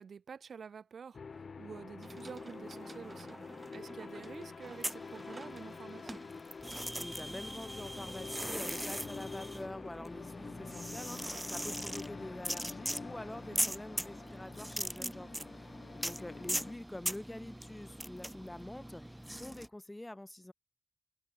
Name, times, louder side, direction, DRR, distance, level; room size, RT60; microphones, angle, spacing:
voice 1, 0.0-3.4 3.7-6.2 13.5-13.8, right 6 dB, 85° right, 1.3 m, -49 dB
sound 1, 1.1-16.7, left 5 dB, 55° left, 2.4 m, -47 dB
sound 2, 2.0-7.7, right 2 dB, 25° right, 3.8 m, -53 dB
sound 3, 4.7-5.8 6.1-19.7, right 1 dB, 5° right, 0.5 m, -40 dB
voice 2, 6.7-20.5, left 1 dB, 15° left, 2.8 m, -46 dB
wide cardioid pair, 155°, 0 cm